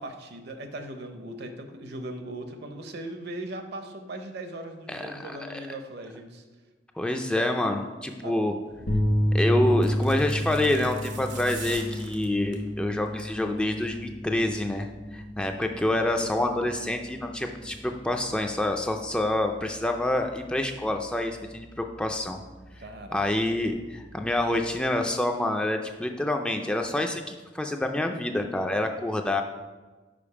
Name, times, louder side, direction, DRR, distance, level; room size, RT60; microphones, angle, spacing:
voice 1, 0.0-6.4 8.2-8.3 22.8-23.2, right 1 dB, 60° right, 6 dB, 0.7 m, -39 dB
voice 2, 4.9-5.6 7.0-8.5 9.3-22.4 23.1-29.4, left 1 dB, 5° left, 4 dB, 0.3 m, -27 dB
sound 1, 8.7-9.0 9.7-12.7 13.1-13.4 13.7-13.8, right 5 dB, 90° right, 0.9 m, -43 dB
sound 2, 8.9-24.8, equal, 55° left, 0.8 m, -32 dB
5.1 x 5.0 x 4.8 m, 1.3 s
head